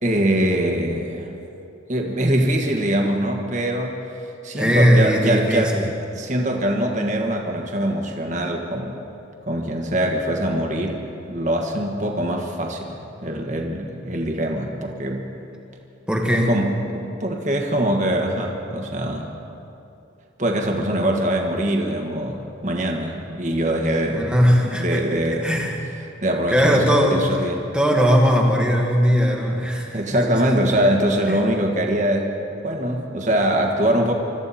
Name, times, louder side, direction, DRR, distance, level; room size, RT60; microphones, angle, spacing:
voice 1, 0.0-1.3 1.9-4.0 4.4-5.7 6.1-9.0 9.5-11.0 11.3-13.0 13.2-15.3 16.3-19.3 20.4-24.2 24.6-25.4 26.2-27.6 29.9-32.3 32.6-34.1, right 1 dB, 35° right, 1 dB, 1.5 m, -23 dB
voice 2, 4.6-5.9 16.1-16.6 24.1-25.9 26.5-27.3 27.7-30.4 31.3-31.4, equal, 5° right, 0 dB, 1.6 m, -19 dB
25.0 x 13.5 x 4.3 m, 2.7 s
head